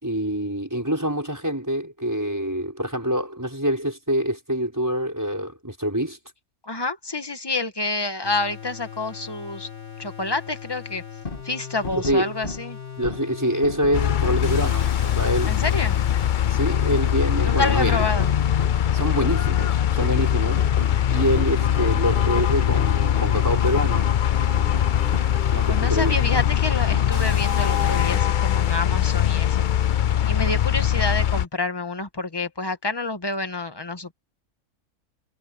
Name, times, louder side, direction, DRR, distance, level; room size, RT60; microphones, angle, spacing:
voice 1, 0.0-6.2 12.0-12.3 13.0-15.5 16.5-18.0 18.9-20.6 21.1-24.1 25.5-26.2, equal, 10° right, 6.1 m, -25 dB
voice 2, 6.6-9.7 10.0-11.0 11.4-12.8 15.5-16.0 17.4-18.3 25.7-29.6 29.9-30.0 30.3-34.1, left 2 dB, 15° left, 1.5 m, -28 dB
sound 1, 8.2-28.2, left 4 dB, 35° left, 2.0 m, -35 dB
sound 2, 13.9-31.5, left 10 dB, 75° left, 0.4 m, -21 dB
omnidirectional pair, 1.6 m